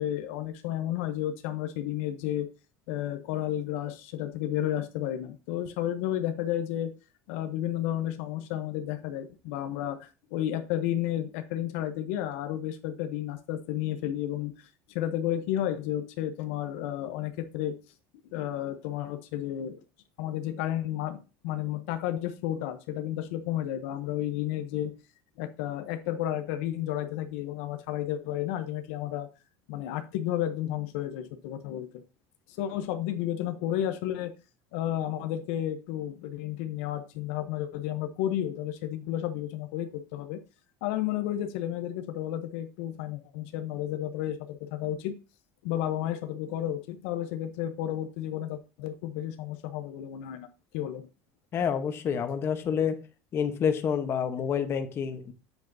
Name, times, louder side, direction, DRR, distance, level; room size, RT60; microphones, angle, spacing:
voice 1, 0.0-2.5 2.9-6.9 7.3-14.5 14.9-17.8 18.3-19.8 20.2-24.9 25.4-29.3 29.7-31.9 32.6-34.3 34.7-40.4 40.8-45.1 45.6-50.5 50.7-51.1, left 12 dB, 85° left, 8 dB, 0.8 m, -32 dB
voice 2, 51.5-53.0 53.3-55.3, left 7 dB, 35° left, 8 dB, 1.0 m, -28 dB
8.3 x 7.9 x 2.7 m, 0.31 s
cardioid pair, 140°, 7 cm